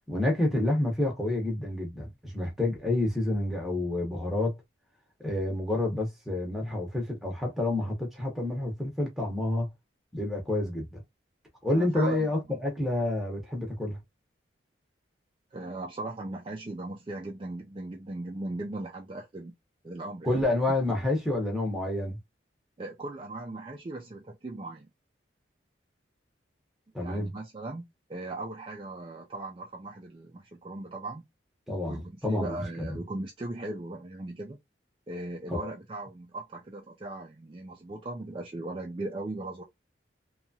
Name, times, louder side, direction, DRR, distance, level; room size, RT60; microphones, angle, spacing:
voice 1, 0.1-4.6 5.2-9.7 10.1-11.0 11.6-14.0 20.2-22.2 26.9-27.3 31.7-33.0 35.5-35.7, left 1 dB, ahead, 0.8 m, -29 dB
voice 2, 11.7-12.3 15.5-19.5 19.8-20.4 22.8-24.9 27.0-27.8 28.1-31.2 31.9-34.6 35.1-39.6, right 2 dB, 30° right, 0.3 m, -38 dB
2.9 x 2.3 x 2.6 m
head